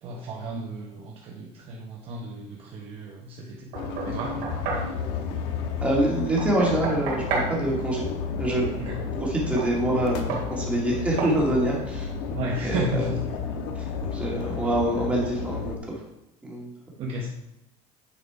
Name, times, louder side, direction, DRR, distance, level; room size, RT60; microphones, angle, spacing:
voice 1, 0.0-3.7 4.0-4.4 8.8-9.0 12.3-13.2 17.0-17.3, right 1 dB, 40° right, -1 dB, 1.0 m, -33 dB
sound 1, 3.7-15.8, left 5 dB, 80° left, 1.2 m, -32 dB
Knock, 3.7-4.9 6.4-7.5 9.6-9.7 10.3-10.5 11.2-11.4, right 4 dB, 75° right, 2.7 m, -30 dB
voice 2, 5.8-8.1 8.4-8.7 9.2-12.1 12.6-13.1 13.8-16.0 16.4-16.7, right 1 dB, 10° right, -3 dB, 2.0 m, -26 dB
9.8 x 4.8 x 4.7 m, 0.89 s
cardioid pair, 175°, 15 cm